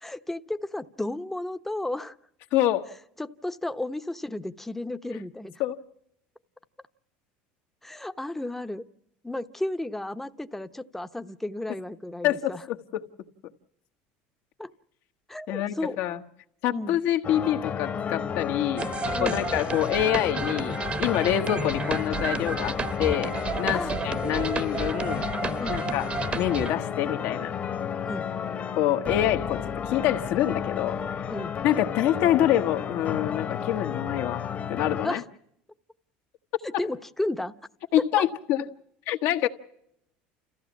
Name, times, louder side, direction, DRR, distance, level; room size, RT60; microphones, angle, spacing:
voice 1, 0.0-2.1 3.2-5.5 7.8-8.8 9.2-12.6 14.6-14.7 15.3-16.0 16.7-17.0 19.1-19.4 23.7-24.0 25.6-25.8 28.1-28.3 31.3-31.5 35.0-35.2 36.8-37.5 38.0-38.3, left 1 dB, 5° left, 0.9 m, -33 dB
voice 2, 2.5-2.9 5.6-5.8 12.2-13.0 15.5-16.2 16.6-18.8 19.2-22.7 23.0-25.2 25.7-27.5 28.8-31.2 31.6-35.2 36.7-36.8 37.9-38.6 39.1-39.5, left 12 dB, 70° left, 1.3 m, -26 dB
sound 1, 17.2-35.1, left 7 dB, 35° left, 1.2 m, -32 dB
sound 2, 18.8-26.7, right 4 dB, 30° right, 1.1 m, -32 dB
30.0 x 15.0 x 7.2 m
supercardioid pair, 105°, 4 cm